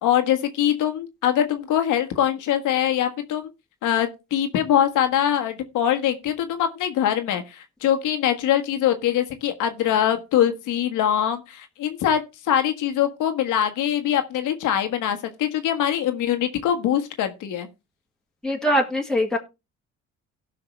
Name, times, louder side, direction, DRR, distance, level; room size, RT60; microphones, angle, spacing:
voice 1, 0.0-3.5 3.8-17.7, left 10 dB, 90° left, 1.5 m, -23 dB
voice 2, 18.4-19.4, equal, ahead, 2.3 m, -22 dB
17.0 x 5.8 x 3.3 m
cardioid pair, 90°, 30 cm